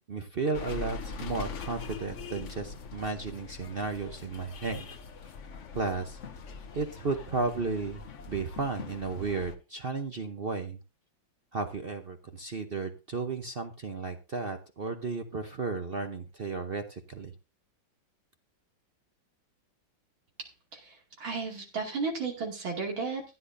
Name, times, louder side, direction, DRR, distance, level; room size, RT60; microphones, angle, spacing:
voice 1, 0.1-4.9 5.7-6.2 6.7-10.8 11.5-17.3, right 4 dB, 45° right, 6 dB, 0.7 m, -34 dB
sound 1, 0.5-9.6, left 5 dB, 50° left, 1.0 m, -42 dB
voice 2, 20.4-23.2, right 4 dB, 85° right, 1 dB, 3.3 m, -34 dB
15.0 x 10.5 x 2.7 m, 0.28 s
omnidirectional pair, 2.1 m